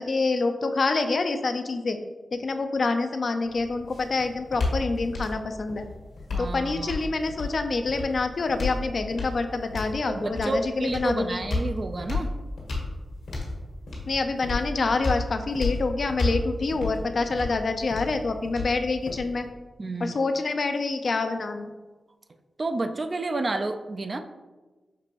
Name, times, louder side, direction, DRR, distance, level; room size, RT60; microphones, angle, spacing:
voice 1, 0.0-2.0 2.3-5.9 6.4-11.4 14.1-19.5 20.0-21.7, left 3 dB, 60° left, 7 dB, 0.4 m, -27 dB
sound 1, 3.4-19.5, left 3 dB, 85° left, 1.4 m, -33 dB
voice 2, 6.3-7.0 10.1-12.3 19.8-20.1 22.6-24.2, right 2 dB, 50° right, 7 dB, 0.4 m, -30 dB
5.9 x 2.9 x 2.9 m, 1.2 s
supercardioid pair, 40°, 0 cm